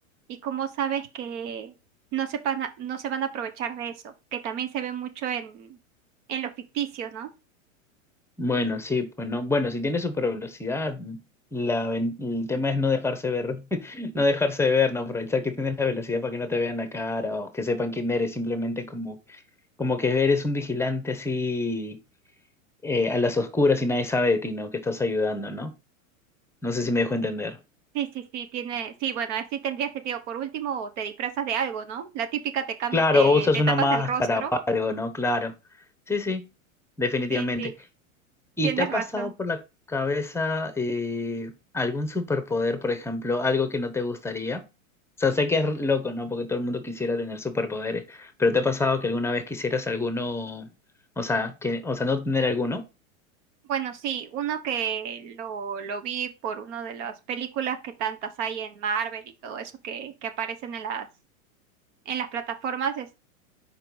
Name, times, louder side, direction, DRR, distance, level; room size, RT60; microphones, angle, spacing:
voice 1, 0.3-1.7 2.1-5.8 6.3-7.3 27.9-33.5 33.8-34.5 37.3-37.7 38.6-39.3 53.7-61.1 62.0-63.2, right 8 dB, 60° right, 1.2 m, -31 dB
voice 2, 8.4-11.2 11.5-19.4 19.8-22.0 22.8-25.7 26.6-27.6 32.9-34.4 34.7-35.5 36.1-36.5 37.0-37.7 38.6-39.6 39.9-44.6 45.2-50.7 51.2-52.9, left 3 dB, 5° left, 0.9 m, -26 dB
4.6 x 4.5 x 5.3 m
hypercardioid pair, 120°, 41 cm